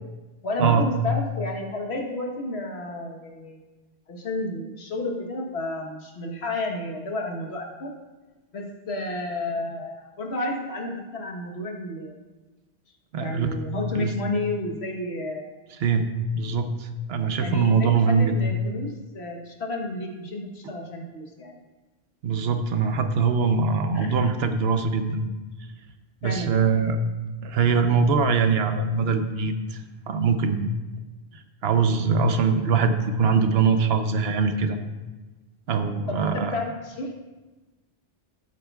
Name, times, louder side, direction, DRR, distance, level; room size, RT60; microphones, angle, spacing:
voice 1, 0.4-3.6 4.1-7.9 8.5-12.2 13.2-15.5 17.4-21.5 23.9-24.2 26.2-26.5 36.1-37.1, left 2 dB, 90° left, 1 dB, 1.5 m, -31 dB
voice 2, 13.1-13.6 14.0-14.1 15.8-16.1 16.3-18.3 22.2-25.3 26.2-27.0 27.4-29.8 30.1-30.8 31.3-34.8 35.7-36.6, right 5 dB, 75° right, 7 dB, 1.0 m, -22 dB
13.0 x 8.2 x 2.3 m, 1.2 s
omnidirectional pair, 1.1 m